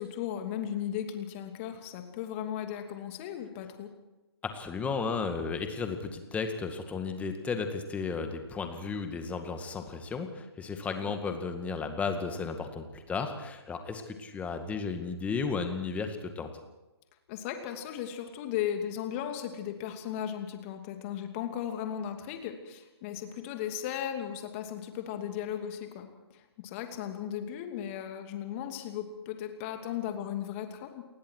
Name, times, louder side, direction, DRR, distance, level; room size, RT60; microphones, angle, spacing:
voice 1, 0.0-3.9 11.0-11.1 17.3-31.0, left 10 dB, 30° left, 5 dB, 2.8 m, -36 dB
voice 2, 4.4-16.5, left 5 dB, 10° left, 6 dB, 2.1 m, -34 dB
29.5 x 20.0 x 4.8 m, 1.1 s
figure-of-eight pair, 135°, 14 cm